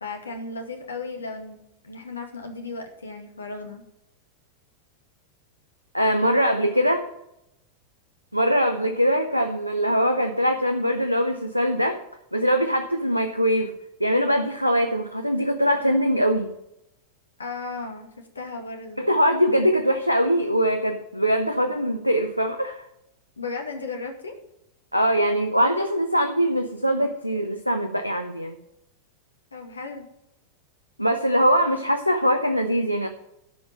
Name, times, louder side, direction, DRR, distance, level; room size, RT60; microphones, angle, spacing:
voice 1, 0.0-1.6 1.8-3.8 17.4-19.0 23.4-24.3 29.5-30.1, left 3 dB, 75° left, 3 dB, 2.0 m, -35 dB
voice 2, 5.9-7.1 8.3-12.0 12.3-13.7 14.0-16.5 19.0-22.9 24.9-28.6 31.0-33.1, equal, 90° right, 7 dB, 0.8 m, -22 dB
12.5 x 5.3 x 7.4 m, 0.85 s
figure-of-eight pair, 90°, 0 cm